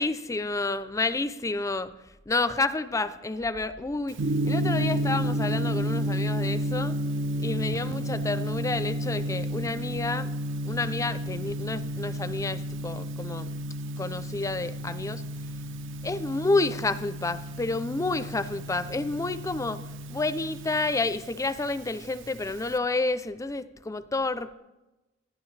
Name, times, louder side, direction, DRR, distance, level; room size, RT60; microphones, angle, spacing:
voice 1, 0.0-1.9 2.3-7.0 7.4-10.3 10.6-13.7 14.0-15.2 16.0-19.8 20.1-24.5, left 3 dB, 15° left, 13 dB, 0.4 m, -29 dB
Gong, 4.1-22.8, equal, 65° right, 0.6 m, -31 dB
19.0 x 11.5 x 3.2 m, 1.0 s
head